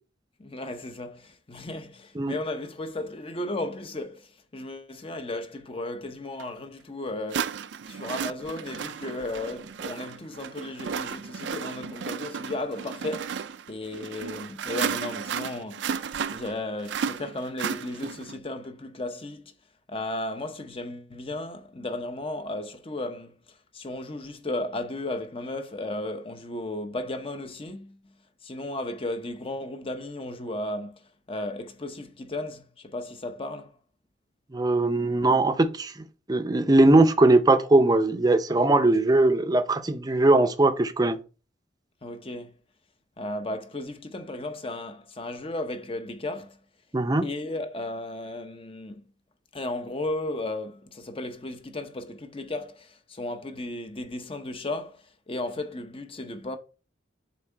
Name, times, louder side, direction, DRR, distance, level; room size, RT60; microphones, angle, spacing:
voice 1, 0.4-7.6 7.9-19.5 19.9-28.1 28.4-33.7 42.0-42.5 43.2-46.6 47.2-49.0 49.5-56.6, left 2 dB, 30° left, 0.7 m, -35 dB
sound 1, 6.4-6.5 7.3-18.4, right 7 dB, 70° right, 0.4 m, -34 dB
voice 2, 34.5-35.9 36.3-41.2 46.9-47.3, right 2 dB, 20° right, 0.6 m, -20 dB
7.3 x 3.6 x 4.4 m
head